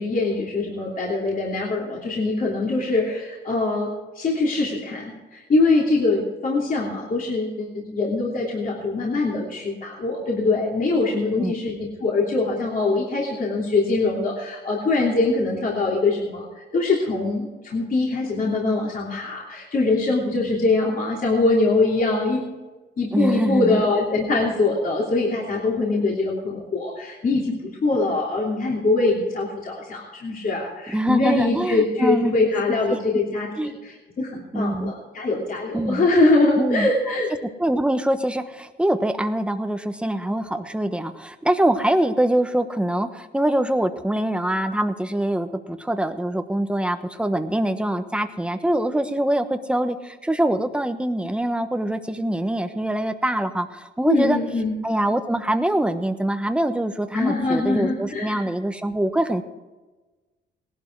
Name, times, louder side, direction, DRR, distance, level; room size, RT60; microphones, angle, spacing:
voice 1, 0.0-22.4 23.0-37.3 54.1-54.7 57.1-58.4, left 3 dB, 45° left, -3 dB, 3.1 m, -23 dB
voice 2, 23.1-23.8 30.9-32.3 32.9-33.0 33.6-33.7 34.5-34.9 35.7-36.1 36.6-36.9 37.6-54.4 54.8-59.4, right 1 dB, 5° right, 8 dB, 1.2 m, -24 dB
18.0 x 11.5 x 4.7 m, 1.2 s
cardioid pair, 90°, 20 cm